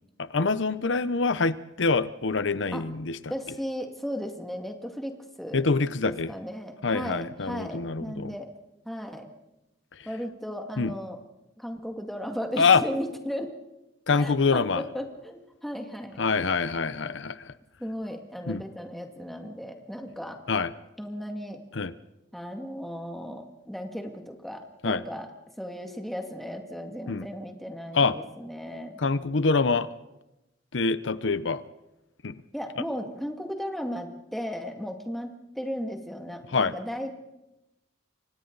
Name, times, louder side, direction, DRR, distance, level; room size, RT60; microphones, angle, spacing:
voice 1, 0.2-3.2 5.5-6.3 6.8-8.3 10.8-10.9 12.6-12.8 14.1-14.8 16.2-17.5 18.5-18.6 20.5-20.7 21.7-21.9 24.8-25.0 27.1-27.3 27.9-28.2 29.0-29.9 30.7-31.6 32.2-32.3 36.5-36.7, left 4 dB, 80° left, 14 dB, 0.8 m, -25 dB
voice 2, 3.3-5.6 6.0-8.5 8.9-9.3 10.1-11.2 11.6-13.6 14.2-16.2 17.8-20.4 21.0-21.6 22.3-25.3 25.6-28.9 32.5-37.2, equal, ahead, 3 dB, 2.1 m, -36 dB
29.0 x 24.5 x 4.0 m, 0.96 s
head